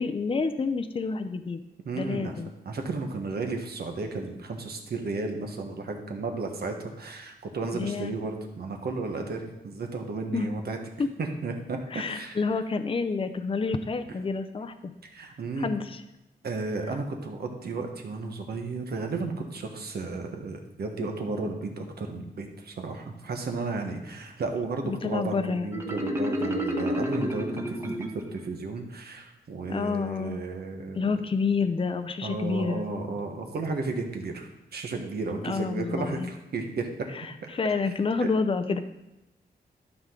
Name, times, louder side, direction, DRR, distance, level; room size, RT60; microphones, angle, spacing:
voice 1, 0.0-1.6 2.0-2.5 7.7-8.1 10.3-10.5 11.0-11.1 11.9-14.9 15.6-16.0 24.8-25.8 29.7-30.4 31.0-32.8 35.4-36.3 37.1-38.8, left 4 dB, 30° left, 8 dB, 0.6 m, -29 dB
voice 2, 1.8-2.4 2.6-10.8 11.2-12.4 15.1-15.7 16.4-31.0 32.2-36.9 37.4-37.5 38.2-38.3, right 3 dB, 70° right, 3 dB, 1.4 m, -33 dB
Marimba xylophone, 25.7-28.5, equal, 15° right, 1.2 m, -30 dB
12.5 x 6.0 x 3.8 m, 0.96 s
cardioid pair, 90°, 17 cm